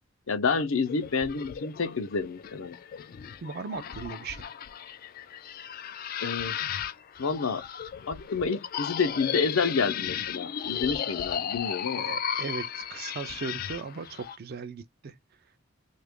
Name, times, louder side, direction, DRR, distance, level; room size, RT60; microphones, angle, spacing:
voice 1, 0.3-2.8 6.2-6.7 7.2-7.6 8.1-12.1, left 5 dB, 85° left, 0.6 m, -29 dB
sound 1, 0.9-14.4, left 9 dB, 45° left, 0.3 m, -35 dB
voice 2, 3.4-4.4 11.9-15.2, right 5 dB, 50° right, 0.5 m, -37 dB
2.8 x 2.4 x 3.5 m
head